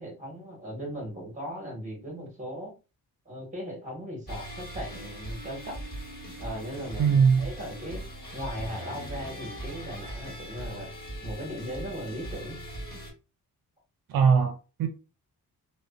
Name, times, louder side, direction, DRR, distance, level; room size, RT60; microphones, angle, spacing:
voice 1, 0.0-2.7 3.3-5.8 6.4-8.0 8.3-10.9 11.2-12.6, equal, 20° right, 1.1 m, -38 dB
sound 1, 4.3-13.1, right 1 dB, 25° left, 1.3 m, -40 dB
voice 2, 7.0-7.5 14.1-14.9, right 6 dB, 75° right, 0.5 m, -21 dB
2.4 x 2.2 x 2.4 m
wide cardioid pair, 115°, 35 cm